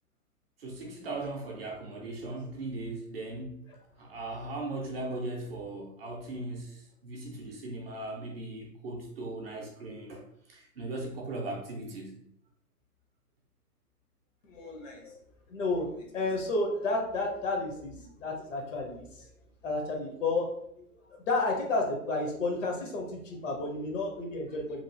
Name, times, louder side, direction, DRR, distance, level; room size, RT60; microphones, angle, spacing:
voice 1, 0.6-3.6 4.0-12.2, right 2 dB, 40° right, -1 dB, 0.6 m, -38 dB
voice 2, 14.4-15.2 15.5-19.3 19.6-20.5 21.1-24.8, left 2 dB, 55° left, 1 dB, 0.8 m, -31 dB
3.0 x 2.3 x 2.6 m, 0.73 s
hypercardioid pair, 145°, 47 cm